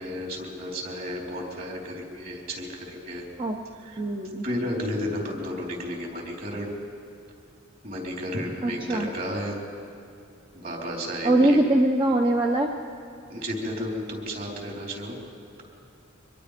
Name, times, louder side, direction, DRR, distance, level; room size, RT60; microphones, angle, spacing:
voice 1, 0.0-3.3 3.8-4.0 4.4-6.7 7.8-9.6 10.5-11.6 13.3-15.2, equal, 50° right, 0 dB, 4.2 m, -32 dB
voice 2, 4.0-4.5 8.6-9.1 11.2-12.7, right 1 dB, 25° right, 2 dB, 0.9 m, -22 dB
24.5 x 21.5 x 5.2 m, 2.6 s
head